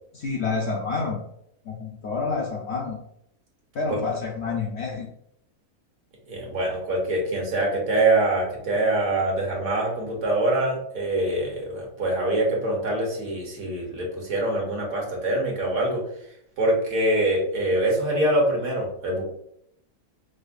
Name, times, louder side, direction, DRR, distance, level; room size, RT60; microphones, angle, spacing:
voice 1, 0.1-1.2 1.7-3.0 3.7-5.1, left 4 dB, 65° left, -1 dB, 0.7 m, -28 dB
voice 2, 6.3-16.0 16.6-19.2, right 1 dB, 70° right, -2 dB, 1.5 m, -24 dB
4.9 x 2.1 x 2.5 m, 0.73 s
omnidirectional pair, 1.6 m